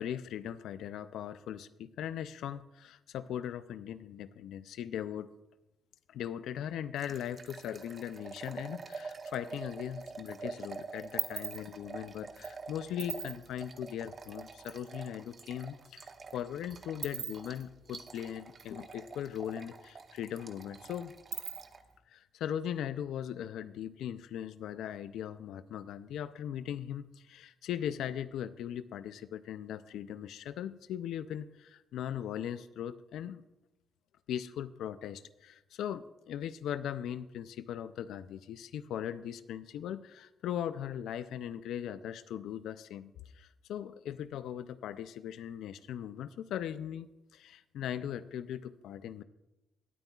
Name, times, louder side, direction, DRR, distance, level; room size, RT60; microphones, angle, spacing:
voice 1, 0.0-5.3 6.1-21.1 22.1-33.4 34.3-49.2, left 10 dB, 85° left, 14 dB, 0.4 m, -39 dB
sound 1, 7.0-21.8, right 4 dB, 45° right, 0.8 m, -47 dB
sound 2, 9.6-10.3 10.6-14.8 15.1-15.2 15.5-19.3 19.6-19.7 20.0-22.0, right 10 dB, 85° right, 0.9 m, -42 dB
20.0 x 9.3 x 2.3 m, 0.99 s
cardioid pair, 85°, 0 cm